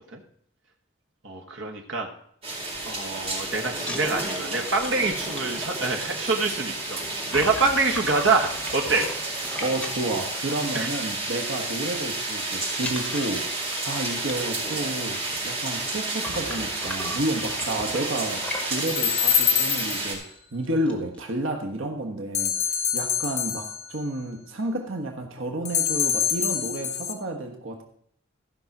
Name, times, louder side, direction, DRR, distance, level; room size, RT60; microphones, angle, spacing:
voice 1, 1.2-2.1 2.8-7.0 7.3-9.1 10.7-10.9, right 3 dB, 70° right, 2 dB, 1.4 m, -25 dB
sound 1, 2.4-20.1, right 2 dB, 30° right, 4.2 m, -31 dB
sound 2, 3.8-10.9 11.2-11.5 11.7-12.3 12.7-19.1 19.8-19.9 20.2-20.4 20.6-21.2, left 1 dB, 5° left, 1.4 m, -39 dB
voice 2, 9.6-15.2 15.4-18.4 18.7-27.8, right 1 dB, 85° right, 3 dB, 1.3 m, -31 dB
sound 3, 18.9-20.2 22.3-24.0 25.7-27.1, left 8 dB, 35° left, 1.1 m, -25 dB
15.0 x 5.6 x 6.0 m, 0.64 s
head